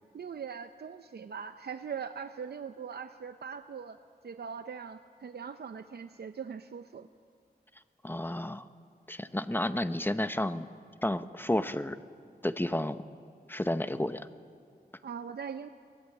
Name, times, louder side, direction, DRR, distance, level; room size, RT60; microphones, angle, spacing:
voice 1, 0.1-4.0 4.2-7.1 15.0-15.7, right 6 dB, 75° right, 9 dB, 0.6 m, -41 dB
voice 2, 8.0-8.6 9.1-10.7 11.0-12.0 12.4-13.0 13.5-14.3, left 1 dB, 10° left, 11 dB, 0.8 m, -31 dB
23.0 x 18.5 x 8.5 m, 2.2 s
wide cardioid pair, 75°, 17 cm